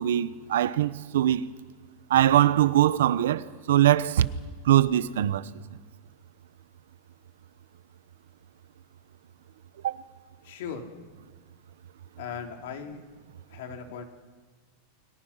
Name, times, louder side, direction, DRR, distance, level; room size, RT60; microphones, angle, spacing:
voice 1, 0.0-1.4 2.1-4.3 4.6-5.5 9.8-9.9, right 12 dB, 85° right, 1.0 m, -22 dB
voice 2, 10.4-10.9 12.2-13.1 13.5-14.1, left 7 dB, 60° left, 3.1 m, -38 dB
29.0 x 23.0 x 5.8 m
supercardioid pair, 175°, 0 cm